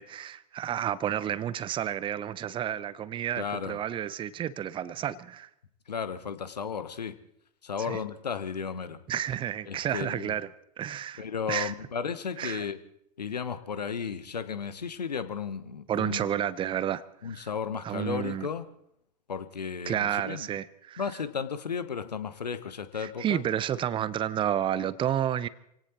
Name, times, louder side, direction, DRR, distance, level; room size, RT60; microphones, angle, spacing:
voice 1, 0.0-5.5 7.9-8.0 9.1-10.5 10.8-11.7 12.4-12.7 15.9-17.0 17.3-17.5 17.8-18.5 19.9-21.0 23.0-25.5, right 10 dB, 25° right, 17 dB, 0.7 m, -31 dB
voice 2, 3.4-3.8 5.9-7.1 7.6-9.0 9.7-10.3 11.2-12.8 13.2-16.3 17.2-18.7 19.3-20.5 21.0-23.4, left 6 dB, 80° left, 12 dB, 1.1 m, -34 dB
27.0 x 17.5 x 3.0 m, 0.76 s
figure-of-eight pair, 90°, 21 cm